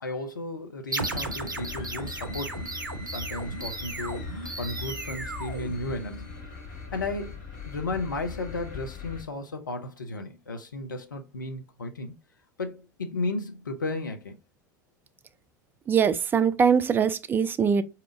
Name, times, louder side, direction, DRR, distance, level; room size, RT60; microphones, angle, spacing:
voice 1, 0.0-2.7 3.1-6.3 6.9-12.1 12.6-14.4, left 2 dB, 80° left, 0.5 m, -34 dB
sound 1, 0.9-6.3, right 3 dB, 85° right, 0.5 m, -35 dB
sound 2, 1.0-9.2, left 5 dB, 50° left, 1.4 m, -40 dB
voice 2, 15.9-17.8, right 6 dB, 20° right, 0.4 m, -22 dB
4.7 x 2.8 x 2.5 m
figure-of-eight pair, 80°, 10 cm